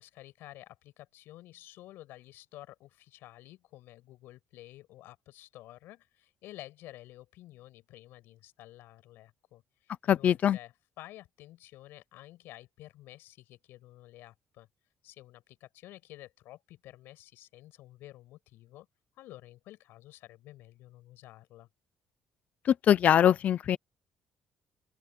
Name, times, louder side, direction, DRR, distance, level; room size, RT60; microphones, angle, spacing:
voice 1, 0.0-14.7 15.0-18.9 19.1-21.7, left 16 dB, 90° left, 6.3 m, -51 dB
voice 2, 10.1-10.6 22.9-23.8, left 10 dB, 45° left, 0.6 m, -22 dB
open air
cardioid pair, 165°, 4 cm